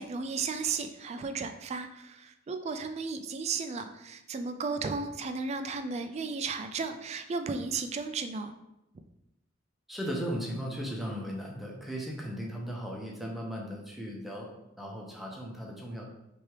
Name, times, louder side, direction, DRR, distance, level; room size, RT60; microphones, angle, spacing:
voice 1, 0.0-8.5, right 4 dB, 35° right, 8 dB, 0.3 m, -34 dB
voice 2, 9.9-14.5 14.8-16.0, equal, ahead, -2 dB, 0.8 m, -37 dB
3.4 x 3.3 x 4.6 m, 0.89 s
head